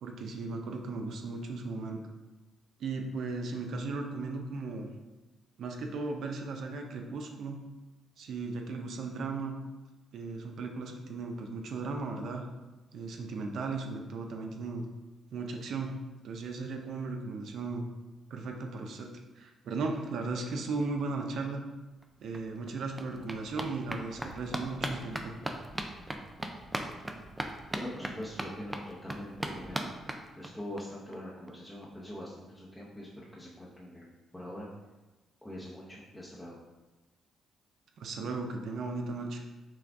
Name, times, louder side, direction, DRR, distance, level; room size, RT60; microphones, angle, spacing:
voice 1, 0.0-2.0 2.8-4.9 5.6-7.6 8.2-9.6 10.1-12.5 12.9-14.9 15.3-16.0 16.2-17.8 18.3-19.1 19.4-21.6 22.2-25.3 38.0-39.4, right 3 dB, 70° right, 3 dB, 0.5 m, -36 dB
sound 1, 22.0-22.1 22.3-30.8 31.1-31.2 31.5-31.6 31.8-31.9, right 1 dB, 15° right, 0.4 m, -39 dB
voice 2, 27.7-29.9 30.4-34.1 34.3-34.7 35.4-36.6, left 1 dB, 5° left, -7 dB, 0.8 m, -43 dB
6.0 x 2.3 x 3.4 m, 1.1 s
cardioid pair, 90°, 0 cm